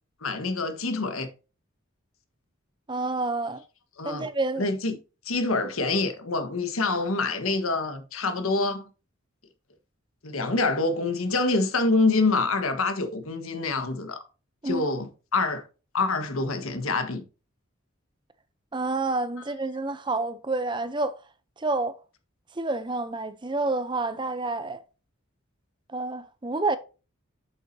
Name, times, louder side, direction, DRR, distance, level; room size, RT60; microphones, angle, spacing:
voice 1, 0.2-1.3 4.0-4.3 4.6-5.0 5.2-8.8 10.2-14.2 14.6-15.6 15.9-17.2, left 3 dB, 80° left, 1.4 m, -26 dB
voice 2, 2.9-3.6 4.0-4.7 14.6-14.9 18.7-21.2 21.6-21.9 22.5-24.8 25.9-26.8, right 3 dB, 20° right, 0.6 m, -28 dB
8.3 x 7.4 x 2.7 m
head